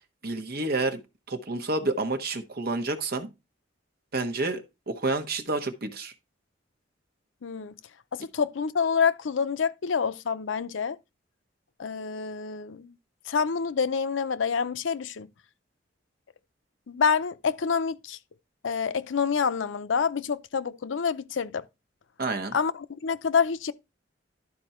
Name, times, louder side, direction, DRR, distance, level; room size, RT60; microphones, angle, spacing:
voice 1, 0.2-1.0 1.3-3.3 4.1-6.1 22.2-22.5, right 2 dB, 55° right, 1.3 m, -29 dB
voice 2, 7.4-7.8 8.1-11.0 11.8-12.9 13.3-15.3 16.9-18.2 18.6-21.6 22.5-23.7, left 6 dB, 90° left, 0.6 m, -27 dB
12.0 x 4.3 x 4.3 m
head